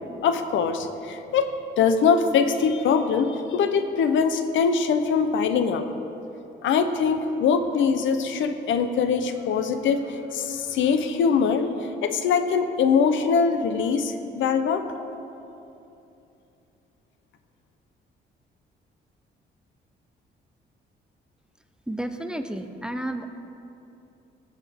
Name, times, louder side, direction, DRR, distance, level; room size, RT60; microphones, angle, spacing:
voice 1, 0.2-5.8 6.6-11.7 12.0-14.9, left 6 dB, 75° left, 9 dB, 0.7 m, -23 dB
voice 2, 21.9-23.3, right 1 dB, 5° right, 7 dB, 0.5 m, -31 dB
15.0 x 8.3 x 3.6 m, 2.8 s
cardioid pair, 90°, 20 cm